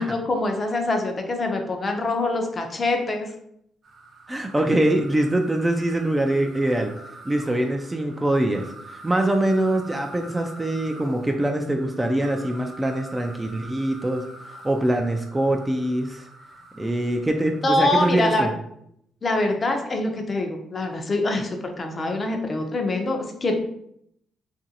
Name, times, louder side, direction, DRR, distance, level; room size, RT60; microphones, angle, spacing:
voice 1, 0.0-3.3 17.6-18.5 19.2-23.5, left 2 dB, 35° left, 4 dB, 0.5 m, -24 dB
sound 1, 3.8-18.5, right 2 dB, 50° right, 0.7 m, -45 dB
voice 2, 4.3-6.9 7.2-16.3 16.7-18.5, right 1 dB, 15° right, 3 dB, 0.3 m, -23 dB
2.9 x 2.5 x 2.7 m, 0.74 s
cardioid pair, 90°, 0 cm